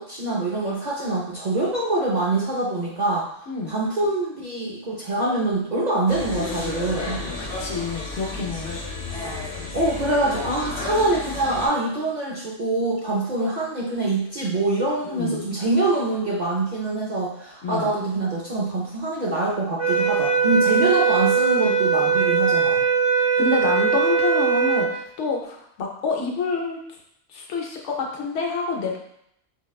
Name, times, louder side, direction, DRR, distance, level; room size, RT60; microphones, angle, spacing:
voice 1, 0.0-3.3 3.7-7.2 9.7-22.8, right 2 dB, 50° right, -5 dB, 0.5 m, -24 dB
sound 1, 6.1-11.7, left 3 dB, 45° left, 1.0 m, -32 dB
voice 2, 7.2-8.8 15.0-15.5 17.6-17.9 23.2-26.8 27.3-29.0, left 4 dB, 70° left, 0 dB, 0.9 m, -28 dB
sound 2, 19.8-24.9, right 5 dB, 80° right, 1.4 m, -20 dB
4.5 x 2.1 x 2.3 m, 0.73 s
omnidirectional pair, 1.3 m